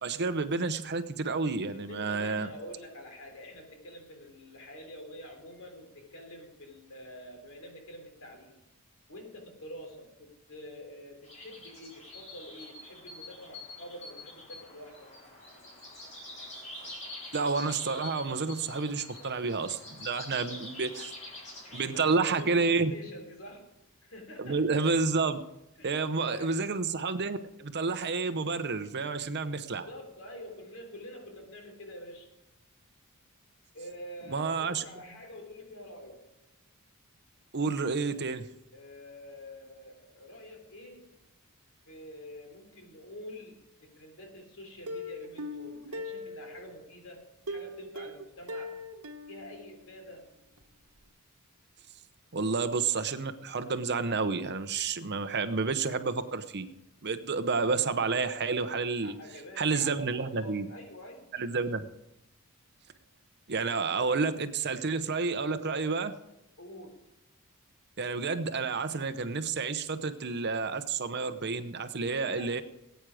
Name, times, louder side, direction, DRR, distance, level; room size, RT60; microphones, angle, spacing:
voice 1, 0.0-2.5 17.3-21.1 21.7-22.9 24.4-25.4 25.8-29.9 34.3-34.8 37.5-38.5 52.3-56.7 57.0-59.2 59.6-60.7 61.3-61.9 63.5-66.1 68.0-72.6, right 4 dB, 50° right, 11 dB, 0.8 m, -30 dB
voice 2, 1.8-8.6 9.1-15.1 20.3-20.7 21.2-21.3 21.8-23.7 24.0-24.6 25.8-25.9 26.2-26.6 29.6-32.3 33.7-36.3 38.7-41.2 41.9-48.8 49.3-50.2 59.0-61.3 66.6-67.0 72.1-72.6, left 1 dB, 65° left, 4 dB, 3.3 m, -47 dB
sound 1, 11.2-22.8, left 2 dB, 35° left, 4.4 m, -46 dB
Plucked string instrument, 44.9-46.8 47.5-50.3 50.6-50.7 51.0-51.1, left 1 dB, 75° right, 1.3 m, -41 dB
19.0 x 9.2 x 5.0 m, 0.88 s
head